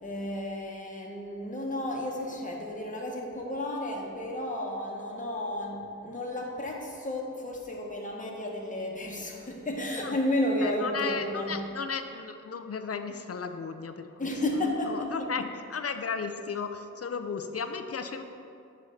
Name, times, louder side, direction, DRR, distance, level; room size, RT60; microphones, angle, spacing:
voice 1, 0.0-11.6 14.2-15.3, left 1 dB, 25° left, -1 dB, 0.9 m, -32 dB
voice 2, 10.6-14.3 14.9-18.2, left 5 dB, 50° left, 8 dB, 0.4 m, -35 dB
6.2 x 3.1 x 5.6 m, 2.6 s
wide cardioid pair, 50°, 32 cm